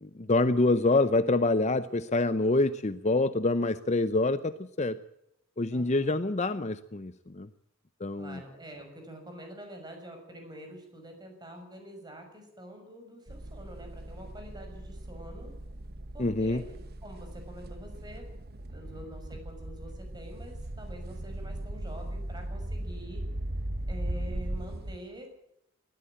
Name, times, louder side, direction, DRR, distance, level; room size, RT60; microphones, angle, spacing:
voice 1, 0.0-5.0 5.6-7.5 8.0-8.4 16.2-16.6, left 2 dB, 35° left, 13 dB, 0.7 m, -26 dB
voice 2, 5.7-6.2 8.2-15.5 16.1-18.4 18.7-23.2 23.9-25.3, equal, 20° right, 4 dB, 6.2 m, -46 dB
sound 1, 13.3-25.0, right 1 dB, 50° right, 1.1 m, -38 dB
20.0 x 14.5 x 8.9 m, 0.79 s
head